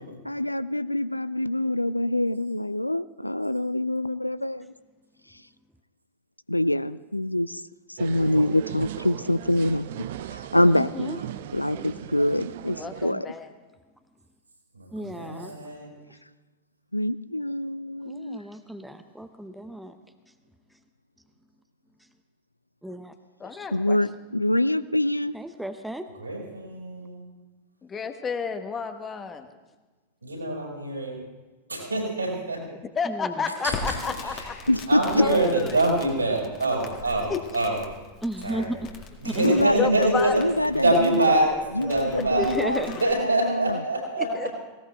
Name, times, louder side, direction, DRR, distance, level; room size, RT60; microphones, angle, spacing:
voice 1, 0.2-4.7 6.5-7.6 7.9-9.9 10.3-11.2 11.5-13.3 16.9-18.4 23.7-25.3 34.7-35.2 39.4-41.3 41.8-42.8 43.2-43.8, left 1 dB, 85° left, 18 dB, 0.4 m, -25 dB
sound 1, 8.0-13.1, right 12 dB, 55° right, 0.5 m, -37 dB
voice 2, 10.7-11.2 14.9-15.6 16.1-16.2 18.0-20.3 20.7-20.8 22.0-22.1 22.8-23.1 23.4-23.7 25.3-26.1 33.0-33.5 38.2-38.8 39.2-39.9 42.4-43.0, right 1 dB, 5° right, 8 dB, 0.8 m, -34 dB
voice 3, 12.8-13.5 23.4-24.0 27.8-29.5 32.9-34.7 35.2-35.8 37.3-37.4 38.7-38.8 39.8-40.3 41.8-42.6 44.2-44.5, left 5 dB, 20° left, 7 dB, 1.2 m, -31 dB
voice 4, 14.7-15.9 26.2-27.3 30.2-31.2 31.7-32.6 33.6-34.0 34.2-34.5 34.9-37.8 38.4-38.8 39.2-40.4 40.7-42.5 43.0-44.6, right 2 dB, 80° right, -1 dB, 5.2 m, -25 dB
Crackle, 33.7-43.1, left 4 dB, 35° left, 2.0 m, -41 dB
19.0 x 17.5 x 3.4 m, 1.2 s
figure-of-eight pair, 90°, 0 cm